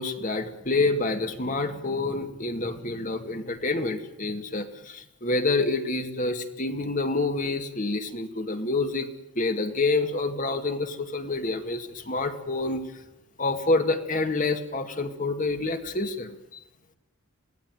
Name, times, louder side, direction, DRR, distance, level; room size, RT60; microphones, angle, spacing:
voice 1, 0.0-9.1 9.4-12.8 13.4-16.6, left 3 dB, 40° left, 7 dB, 2.1 m, -27 dB
24.0 x 17.5 x 9.3 m, 0.85 s
head